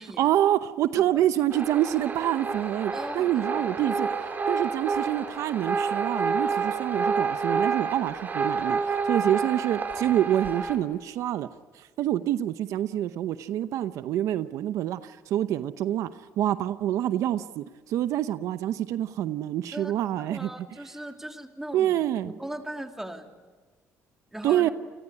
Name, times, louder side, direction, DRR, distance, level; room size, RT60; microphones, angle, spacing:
voice 1, 0.2-4.1 4.5-11.5 11.7-16.1 16.4-20.5 21.7-22.3 24.4-24.7, right 12 dB, 75° right, 12 dB, 0.8 m, -26 dB
voice 2, 0.9-1.3 2.9-3.8 9.2-9.3 19.7-19.9 20.2-22.0 22.2-23.3 24.3-24.7, right 1 dB, 5° right, 4 dB, 3.1 m, -39 dB
sound 1, 1.5-10.8, right 5 dB, 35° right, 4.6 m, -29 dB
29.0 x 21.0 x 9.8 m, 1.4 s
cardioid pair, 95°, 5 cm